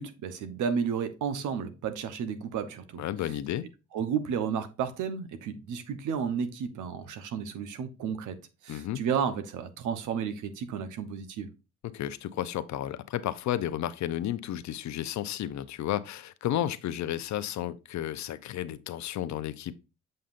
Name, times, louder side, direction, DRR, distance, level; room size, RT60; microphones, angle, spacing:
voice 1, 0.0-3.0 3.9-8.4 8.6-11.5, right 7 dB, 80° right, 1.0 m, -32 dB
voice 2, 3.0-3.6 8.7-9.0 11.8-19.8, left 12 dB, 65° left, 0.7 m, -32 dB
7.7 x 5.4 x 2.5 m
cardioid pair, 90°, 30 cm